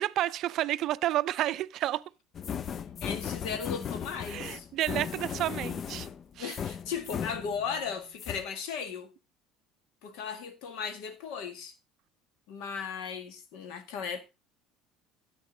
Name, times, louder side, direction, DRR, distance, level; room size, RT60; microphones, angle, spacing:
voice 1, 0.0-2.0 4.3-6.1 6.4-6.6, right 14 dB, 55° right, 0.4 m, -30 dB
sound 1, 2.3-7.9 8.2-8.4, left 8 dB, 40° left, 0.5 m, -37 dB
voice 2, 3.0-4.7 6.4-9.1 10.0-11.7 12.5-14.2, left 6 dB, 65° left, 1.7 m, -36 dB
9.9 x 8.8 x 3.9 m
hypercardioid pair, 70°, 0 cm